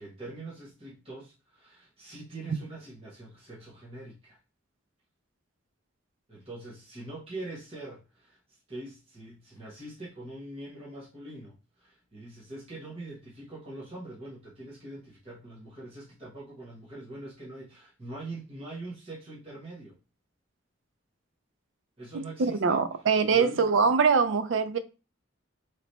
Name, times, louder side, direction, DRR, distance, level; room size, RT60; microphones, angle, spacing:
voice 1, 0.0-4.4 6.3-8.4 8.7-20.0 22.0-22.9 23.3-23.7, right 2 dB, 30° right, 1.2 m, -43 dB
voice 2, 22.4-24.8, right 5 dB, 75° right, 0.5 m, -23 dB
3.3 x 2.9 x 4.1 m
head